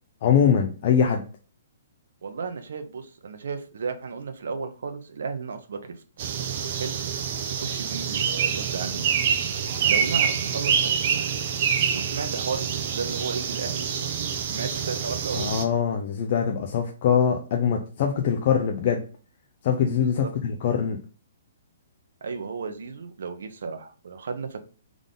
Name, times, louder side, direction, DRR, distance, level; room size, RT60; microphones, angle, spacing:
voice 1, 0.2-1.2 15.4-19.0 19.6-21.0, left 7 dB, 30° left, 2 dB, 0.5 m, -23 dB
voice 2, 2.2-5.8 6.8-7.0 7.5-9.4 9.9-11.3 11.9-13.9 14.5-15.5 20.0-20.3 22.2-24.7, right 5 dB, 65° right, 8 dB, 0.8 m, -34 dB
sound 1, 6.2-15.6, right 7 dB, 30° right, 0.5 m, -26 dB
3.7 x 3.6 x 3.7 m, 0.37 s
hypercardioid pair, 180°, 0 cm